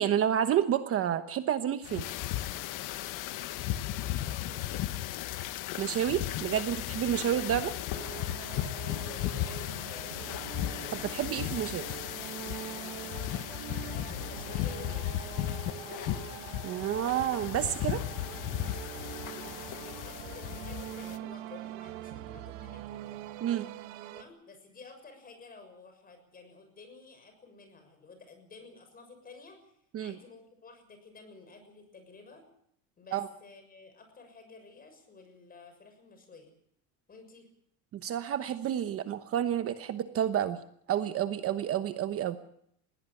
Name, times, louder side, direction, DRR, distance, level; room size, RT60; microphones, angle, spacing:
voice 1, 0.0-2.0 5.8-7.7 10.9-11.9 16.6-18.0 23.4-23.7 29.9-30.2 33.1-33.3 37.9-40.6 40.9-42.4, right 10 dB, 40° right, 10 dB, 1.1 m, -29 dB
sound 1, 1.8-21.2, left 13 dB, 55° left, 1.4 m, -36 dB
voice 2, 4.1-5.0 8.8-10.6 13.6-15.4 19.1-23.2 24.0-32.4 33.0-36.5 37.1-37.5, left 4 dB, 25° left, 7 dB, 6.6 m, -52 dB
sound 2, 7.9-24.2, right 15 dB, 85° right, 2.1 m, -44 dB
21.5 x 17.0 x 8.5 m, 0.72 s
cardioid pair, 145°, 37 cm